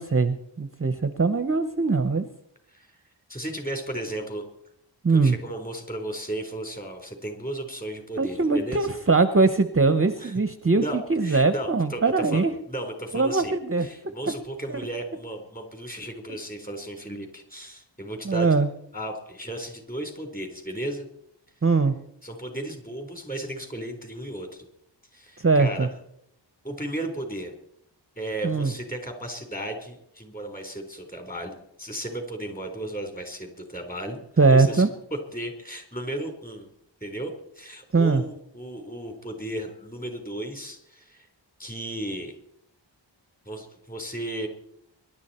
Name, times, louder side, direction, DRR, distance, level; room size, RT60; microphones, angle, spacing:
voice 1, 0.0-2.3 5.0-5.4 8.2-12.5 13.1-13.9 14.7-14.8 18.2-18.7 21.6-21.9 25.4-25.9 28.4-28.7 34.4-34.9 37.9-38.2, right 3 dB, 30° right, 10 dB, 0.9 m, -21 dB
voice 2, 3.3-4.4 5.1-8.9 10.2-10.3 10.8-13.5 13.8-18.5 18.9-21.0 22.2-24.5 25.1-25.9 26.6-27.5 28.2-34.8 35.3-36.7 37.0-41.3 41.6-42.3 43.5-44.5, right 1 dB, 20° left, 4 dB, 4.0 m, -35 dB
24.0 x 11.5 x 4.4 m, 0.75 s
wide cardioid pair, 65°, 45 cm